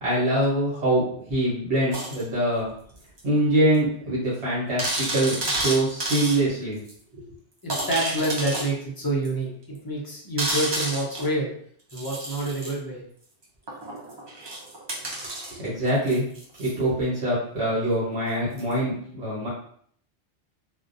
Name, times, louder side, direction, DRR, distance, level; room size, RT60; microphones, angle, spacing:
voice 1, 0.0-2.7 3.2-6.8 7.1-7.2 15.5-16.2 16.6-19.5, right 1 dB, 70° right, -8 dB, 1.1 m, -24 dB
sound 1, 1.9-2.2 3.2-3.3 3.7-3.8 4.1-4.2 4.8-6.4 6.9-7.0 7.7-8.7 9.2-9.3 10.4-11.3 11.9-12.7 13.7-16.7 18.6-18.7, right 2 dB, 40° right, 0.3 m, -30 dB
voice 2, 7.6-11.5 11.9-13.0, right 1 dB, 35° left, -3 dB, 0.3 m, -27 dB
2.4 x 2.1 x 2.6 m, 0.62 s
omnidirectional pair, 1.2 m